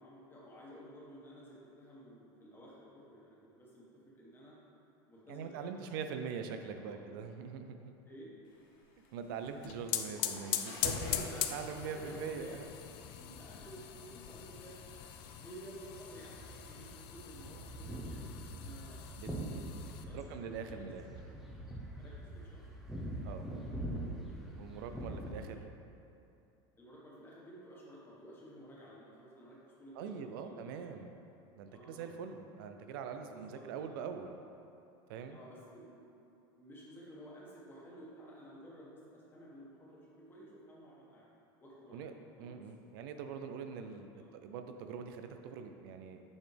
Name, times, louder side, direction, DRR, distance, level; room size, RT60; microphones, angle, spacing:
voice 1, 0.0-4.6 5.1-5.8 6.2-7.0 8.1-8.3 11.0-12.6 13.2-19.0 19.8-20.9 22.0-22.6 26.8-30.9 31.7-32.1 33.3-34.0 35.3-36.2 36.5-41.3 41.6-42.0 42.4-42.5 44.1-44.3, equal, 20° left, -6 dB, 1.5 m, -53 dB
voice 2, 5.3-7.9 9.1-11.2 11.5-12.7 19.2-19.7 20.1-21.0 23.2-23.4 24.6-25.6 30.0-31.1 31.6-34.4 35.1-35.4 41.9-42.1 42.4-44.1 44.4-46.3, right 6 dB, 80° right, 6 dB, 0.5 m, -43 dB
Water / Toilet flush, 8.5-16.8, left 3 dB, 80° left, 0.9 m, -55 dB
sound 1, 9.4-20.0, left 11 dB, 55° left, 0.4 m, -41 dB
sound 2, 16.2-25.3, right 1 dB, ahead, 0.8 m, -44 dB
6.9 x 4.2 x 3.4 m, 2.7 s
supercardioid pair, 125°, 12 cm